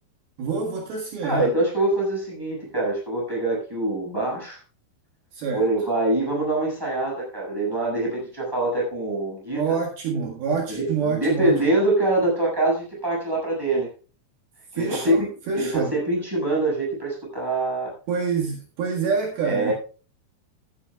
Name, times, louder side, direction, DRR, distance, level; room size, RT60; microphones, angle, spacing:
voice 1, 0.4-1.5 5.3-5.7 9.6-11.6 14.7-16.0 18.1-19.7, right 5 dB, 70° right, 1 dB, 3.5 m, -26 dB
voice 2, 1.2-4.6 5.5-9.6 10.7-13.9 14.7-15.3 15.6-17.9 19.4-19.7, right 2 dB, 5° right, -3 dB, 6.7 m, -24 dB
14.5 x 13.0 x 2.3 m, 0.35 s
omnidirectional pair, 4.8 m